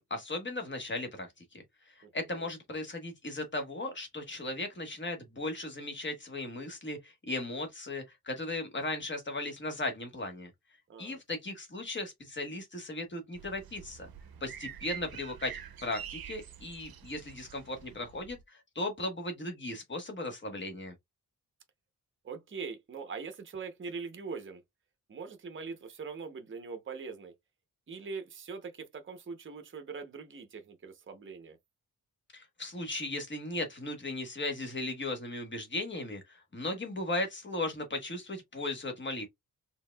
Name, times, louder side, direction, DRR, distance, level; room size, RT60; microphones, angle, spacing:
voice 1, 0.1-10.5 11.0-14.1 14.4-20.9 32.3-39.3, left 2 dB, 30° left, 1.3 m, -37 dB
sound 1, 13.3-18.4, right 8 dB, 70° right, 0.7 m, -46 dB
voice 2, 22.2-24.6 25.1-27.3 27.9-31.6, right 5 dB, 35° right, 0.7 m, -42 dB
4.5 x 3.6 x 2.2 m
wide cardioid pair, 180°, 37 cm